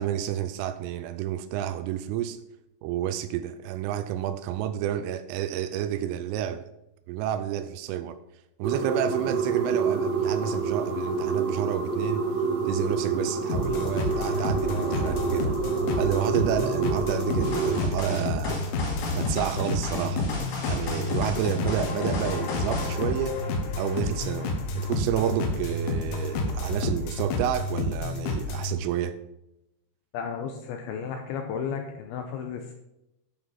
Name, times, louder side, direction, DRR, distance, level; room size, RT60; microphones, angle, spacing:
voice 1, 0.0-2.4 2.8-6.7 7.1-8.2 8.6-12.3 12.7-15.6 16.0-18.7 19.1-20.3 20.7-23.4 23.8-29.2, right 11 dB, 85° right, 3.0 m, -30 dB
sound 1, 8.6-17.8, right 5 dB, 50° right, 2.4 m, -28 dB
sound 2, 13.5-28.7, left 2 dB, 70° left, 3.2 m, -30 dB
sound 3, 17.4-23.0, left 3 dB, 55° left, 3.7 m, -33 dB
voice 2, 30.1-32.7, left 6 dB, 85° left, 2.7 m, -33 dB
12.0 x 5.2 x 5.5 m
omnidirectional pair, 6.0 m